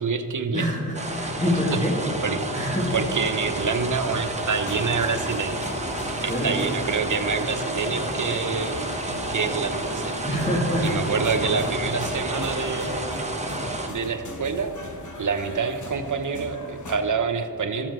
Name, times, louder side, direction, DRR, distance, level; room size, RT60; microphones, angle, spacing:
voice 1, 0.0-0.7 1.7-1.8 2.2-5.7 6.2-8.9 9.3-10.1 10.8-13.3 13.9-14.7 15.2-17.9, right 5 dB, 45° right, 7 dB, 0.8 m, -27 dB
voice 2, 0.5-2.0 2.5-2.9 6.2-6.5 10.2-10.9 11.4-11.7, equal, 15° left, -2 dB, 2.3 m, -26 dB
sound 1, 0.9-13.9, right 1 dB, 15° right, 1.0 m, -30 dB
sound 2, 2.7-13.0, left 2 dB, 70° left, 1.6 m, -40 dB
sound 3, 4.5-17.0, left 2 dB, 45° left, 1.1 m, -40 dB
14.0 x 7.2 x 3.0 m, 2.6 s
cardioid pair, 50°, 41 cm